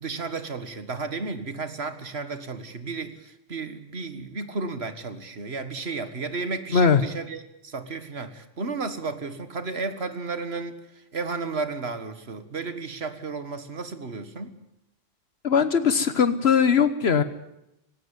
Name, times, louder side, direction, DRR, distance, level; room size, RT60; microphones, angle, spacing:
voice 1, 0.0-14.6, right 4 dB, 75° right, 10 dB, 2.0 m, -33 dB
voice 2, 15.4-17.2, left 6 dB, 75° left, 12 dB, 1.4 m, -20 dB
18.5 x 17.5 x 9.1 m, 0.83 s
omnidirectional pair, 1.1 m